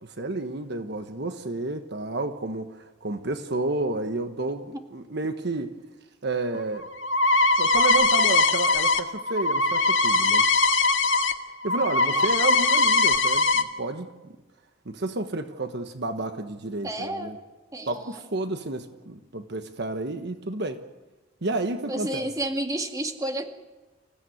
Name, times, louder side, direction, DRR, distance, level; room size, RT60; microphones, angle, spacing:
voice 1, 0.0-5.7 6.2-6.9 7.6-10.5 11.6-14.4 14.8-17.4 17.9-20.8 21.4-22.3, right 2 dB, 60° right, 8 dB, 1.3 m, -31 dB
sound 1, 6.5-11.3 11.6-13.6, left 3 dB, 75° left, 1.8 m, -21 dB
voice 2, 16.8-17.3 17.7-18.2 21.9-23.5, right 1 dB, 20° right, 5 dB, 2.0 m, -31 dB
26.5 x 16.0 x 9.4 m, 1.1 s
head